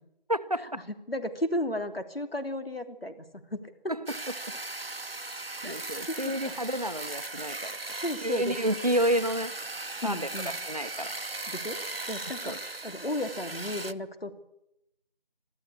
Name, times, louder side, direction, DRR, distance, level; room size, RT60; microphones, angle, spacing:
voice 1, 0.3-0.8 3.9-4.0 5.6-7.8 8.2-9.5 10.0-10.3 10.7-11.1 11.4-11.5 12.5-12.6, right 1 dB, 40° right, 12 dB, 1.0 m, -30 dB
voice 2, 1.1-3.7 5.6-5.7 6.1-6.5 7.9-8.6 10.0-10.5 11.5-11.8 12.1-12.5 12.8-14.4, left 1 dB, 85° left, 8 dB, 3.1 m, -34 dB
sound 1, 4.1-13.9, right 2 dB, 80° right, 1.2 m, -38 dB
23.0 x 14.0 x 9.8 m, 0.83 s
figure-of-eight pair, 175°, 29 cm